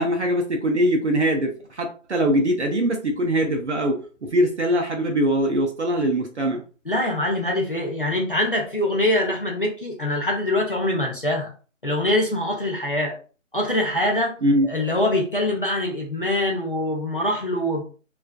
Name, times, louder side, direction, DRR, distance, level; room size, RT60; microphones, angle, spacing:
voice 1, 0.0-6.6 14.4-14.7, equal, 60° right, 2 dB, 0.6 m, -22 dB
voice 2, 6.9-11.5 11.8-13.2 13.5-14.4 14.6-17.8, left 1 dB, 45° left, -1 dB, 0.5 m, -24 dB
2.4 x 2.3 x 2.3 m, 0.38 s
figure-of-eight pair, 180°, 39 cm